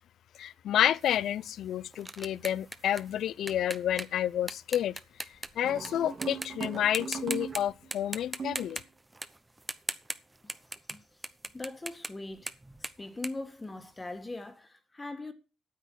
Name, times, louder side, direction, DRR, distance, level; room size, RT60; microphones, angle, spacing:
voice 1, 0.4-5.0 5.6-8.8, left 11 dB, 75° left, 0.5 m, -30 dB
sound 1, 1.0-5.9 6.2-6.7 6.9-7.6 7.9-14.2, right 2 dB, 15° right, 0.9 m, -40 dB
sound 2, 5.6-7.9 8.4-8.8, right 5 dB, 45° right, 2.1 m, -39 dB
voice 2, 11.5-12.5 12.8-15.3, left 2 dB, 20° left, 1.7 m, -40 dB
9.3 x 8.1 x 6.2 m
cardioid pair, 90°, 0 cm